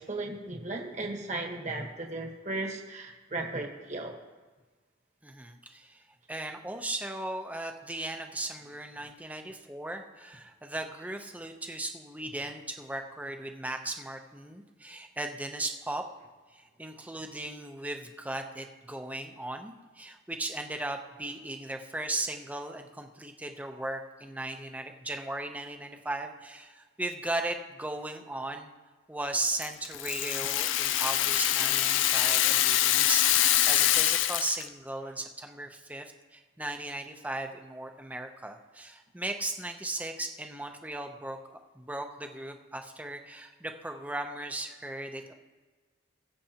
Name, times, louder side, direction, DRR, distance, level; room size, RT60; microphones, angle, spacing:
voice 1, 0.0-4.1 9.0-9.1, right 2 dB, 40° right, 2 dB, 1.3 m, -36 dB
voice 2, 5.2-6.0 6.3-16.0 16.5-28.7 29.1-45.3, right 2 dB, 10° right, 4 dB, 0.7 m, -37 dB
Rattle (instrument), 29.6-34.7, left 12 dB, 80° left, 0.5 m, -25 dB
21.0 x 7.6 x 2.9 m, 1.4 s
head